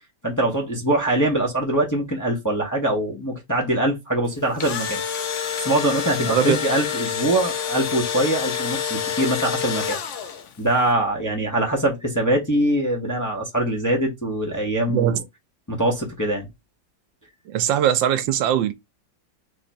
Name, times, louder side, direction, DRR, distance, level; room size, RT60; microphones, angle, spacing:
voice 1, 0.2-5.0 5.6-10.0 10.6-15.2 15.7-16.5, right 1 dB, 10° left, 0.9 m, -23 dB
Engine / Drill, 4.4-10.6, left 7 dB, 65° left, 0.7 m, -27 dB
voice 2, 6.2-6.6 14.9-15.2 17.5-18.7, right 10 dB, 80° right, 1.3 m, -21 dB
4.3 x 2.9 x 4.3 m
omnidirectional pair, 2.1 m